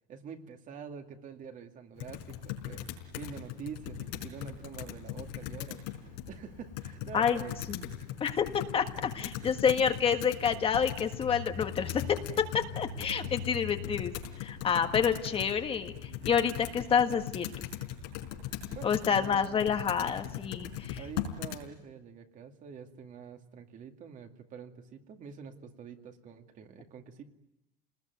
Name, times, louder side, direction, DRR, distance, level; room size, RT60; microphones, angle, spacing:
voice 1, 0.1-7.5 9.1-9.7 18.7-19.6 21.0-27.2, right 6 dB, 40° right, 5 dB, 2.3 m, -46 dB
Computer keyboard, 2.0-21.6, left 10 dB, 85° left, 4.7 m, -39 dB
voice 2, 8.2-17.7 18.8-21.0, left 7 dB, 25° left, 6 dB, 1.6 m, -29 dB
29.0 x 20.0 x 9.4 m, 0.93 s
cardioid pair, 155°, 21 cm